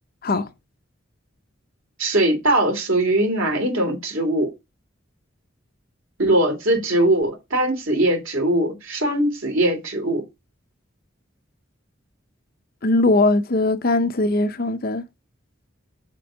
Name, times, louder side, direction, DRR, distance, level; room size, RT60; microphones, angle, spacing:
voice 1, 2.0-4.5 6.2-10.2, right 1 dB, 85° right, 3.1 m, -21 dB
voice 2, 12.8-15.0, left 2 dB, 50° left, 0.7 m, -20 dB
7.5 x 3.7 x 6.3 m
head